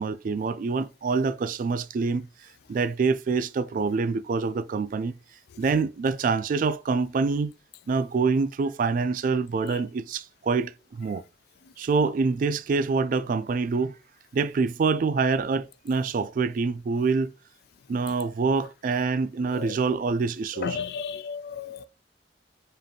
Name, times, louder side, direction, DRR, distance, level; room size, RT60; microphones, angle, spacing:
voice 1, 0.0-2.3 2.7-5.2 5.6-7.5 7.9-11.2 11.8-13.9 14.3-17.3 17.9-20.8, right 4 dB, 50° right, 0.3 m, -26 dB
voice 2, 20.6-21.8, left 6 dB, 60° left, 0.3 m, -33 dB
5.1 x 2.5 x 2.8 m
head